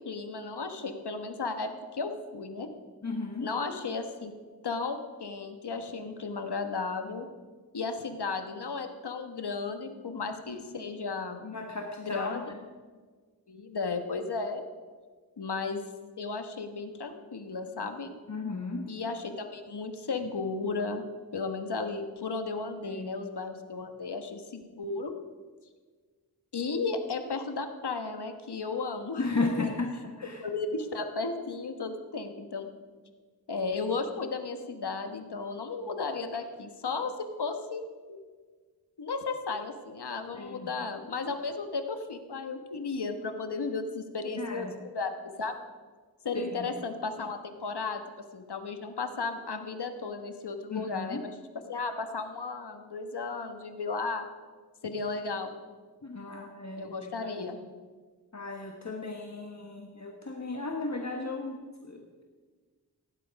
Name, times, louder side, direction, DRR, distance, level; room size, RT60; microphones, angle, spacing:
voice 1, 0.0-2.7 3.4-4.3 4.6-7.3 7.7-11.4 12.0-12.4 13.5-14.6 15.4-15.8 16.2-18.1 18.9-21.0 21.3-25.1 26.5-29.7 30.4-32.7 33.5-38.2 39.0-45.5 46.2-48.0 48.3-51.3 51.7-54.2 54.8-55.5 56.8-57.6, left 4 dB, 80° left, 7 dB, 1.3 m, -34 dB
voice 2, 3.0-3.5 11.4-12.4 18.3-18.8 22.8-23.1 29.2-29.9 30.2-30.4 40.3-40.7 44.4-44.7 46.3-46.7 50.7-51.2 56.0-56.9 57.2-57.5 58.3-62.2, left 3 dB, 45° left, 2 dB, 1.3 m, -35 dB
16.0 x 10.5 x 5.3 m, 1.5 s
wide cardioid pair, 75°, 39 cm